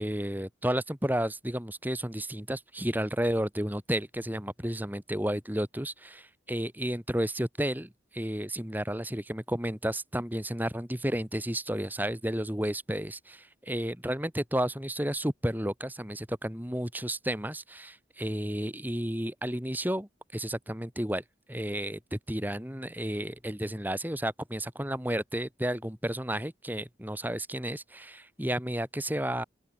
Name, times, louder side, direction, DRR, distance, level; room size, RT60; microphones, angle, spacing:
voice 1, 0.0-21.2 21.5-29.4, right 1 dB, 10° right, 2.1 m, -32 dB
open air
head